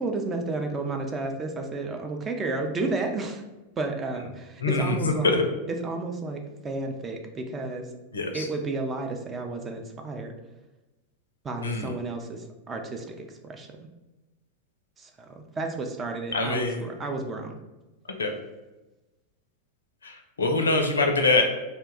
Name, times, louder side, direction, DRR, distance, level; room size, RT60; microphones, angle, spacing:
voice 1, 0.0-3.4 3.8-5.4 5.7-7.9 8.3-10.3 11.4-13.9 15.0-17.6, right 3 dB, 20° right, 3 dB, 0.4 m, -32 dB
voice 2, 4.6-5.4 8.1-8.5 11.6-11.9 16.3-16.8 18.2-18.3 20.0-21.4, left 3 dB, 75° left, 4 dB, 0.5 m, -24 dB
2.6 x 2.2 x 3.6 m, 1.1 s
figure-of-eight pair, 90°, 0 cm